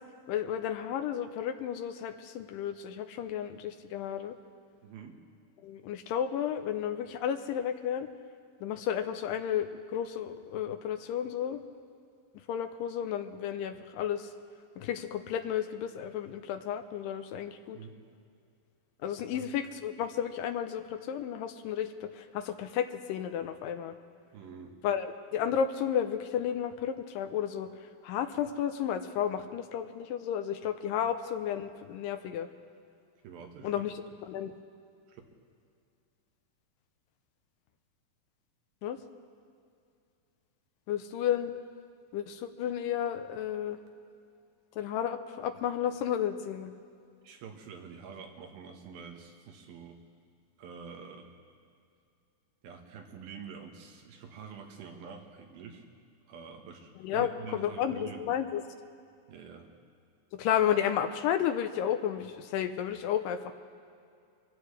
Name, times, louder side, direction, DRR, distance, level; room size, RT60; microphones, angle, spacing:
voice 1, 0.3-4.4 5.6-8.1 8.6-11.6 12.5-14.3 14.8-17.8 19.0-20.8 21.1-23.9 24.8-27.7 28.0-32.5 33.6-33.9 34.3-34.5 38.8-39.0 40.9-41.5 42.1-43.8 44.8-46.7 57.0-58.6 60.4-63.5, left 9 dB, 85° left, 8 dB, 2.2 m, -32 dB
voice 2, 4.8-5.2 17.7-17.9 19.3-19.5 24.3-24.8 33.2-33.9 35.1-35.2 47.2-50.0 50.6-51.3 52.6-55.8 56.3-58.3 59.3-59.7, right 6 dB, 90° right, 2 dB, 3.1 m, -46 dB
24.5 x 16.0 x 3.2 m, 2.4 s
omnidirectional pair, 4.0 m